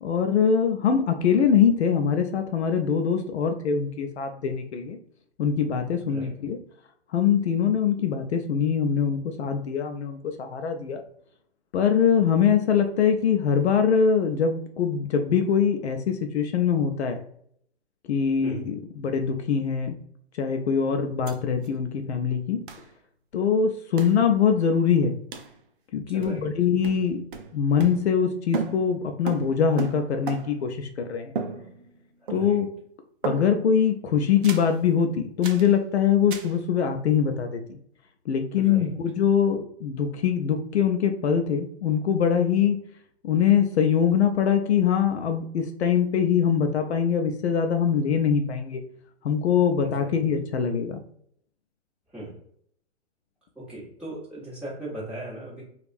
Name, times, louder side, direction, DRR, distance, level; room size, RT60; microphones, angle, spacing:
voice 1, 0.0-5.0 5.4-6.6 7.1-11.0 11.7-17.2 18.1-20.0 20.4-22.6 23.3-25.1 25.9-27.2 27.5-31.3 32.3-32.7 33.2-37.8 38.3-42.8 43.2-48.8 49.2-51.0, left 7 dB, 65° left, 5 dB, 0.5 m, -23 dB
voice 2, 18.4-18.7 26.1-26.5 32.2-32.6 38.6-38.9 49.8-50.2 52.1-52.4 53.5-55.6, right 1 dB, 5° right, -8 dB, 1.3 m, -38 dB
sound 1, 21.3-21.4 21.6-21.7 22.7-22.9 24.0-24.2 25.3-25.6 26.2-26.6 26.8-28.3 28.5-30.7 31.3-32.0 32.3-32.7 33.2-33.7 34.4-34.8 35.4-35.7 36.3-36.6, right 4 dB, 50° right, 0.5 m, -35 dB
3.4 x 2.4 x 2.5 m, 0.65 s
hypercardioid pair, 130°, 35 cm